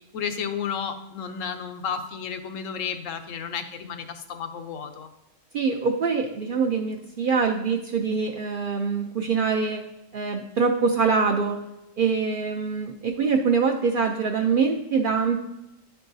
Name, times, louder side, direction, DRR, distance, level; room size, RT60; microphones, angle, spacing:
voice 1, 0.1-5.1, left 7 dB, 85° left, 7 dB, 1.0 m, -32 dB
voice 2, 5.5-9.8 10.1-11.6 12.0-15.4, right 5 dB, 60° right, 2 dB, 0.5 m, -24 dB
9.6 x 4.6 x 2.6 m, 0.88 s
omnidirectional pair, 1.3 m